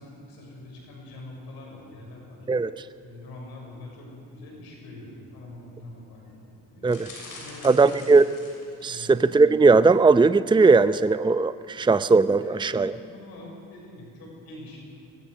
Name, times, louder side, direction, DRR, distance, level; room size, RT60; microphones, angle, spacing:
voice 1, 0.0-2.5 3.0-7.0 7.4-8.4 8.7-9.2 12.3-14.8, left 2 dB, 80° left, -1 dB, 6.3 m, -44 dB
sound 1, 6.9-9.1 9.7-9.9 10.2-10.3, left 2 dB, 60° left, 6.8 m, -45 dB
voice 2, 7.6-8.2 8.8-12.9, right 4 dB, 10° right, 13 dB, 0.6 m, -18 dB
22.5 x 20.5 x 6.5 m, 2.6 s
hypercardioid pair, 50°, 37 cm